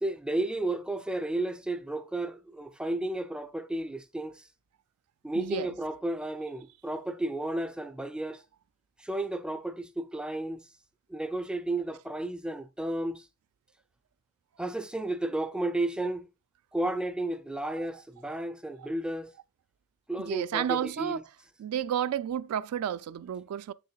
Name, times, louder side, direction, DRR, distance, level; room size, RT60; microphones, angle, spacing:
voice 1, 0.0-4.5 5.2-8.4 9.0-10.7 11.1-13.3 14.6-16.3 16.7-19.3 20.1-21.2, right 1 dB, 5° right, 0.4 m, -33 dB
voice 2, 5.3-5.7 17.8-17.9 18.8-18.9 20.2-21.2 21.6-23.7, right 9 dB, 85° right, 0.3 m, -31 dB
7.3 x 6.6 x 2.3 m
head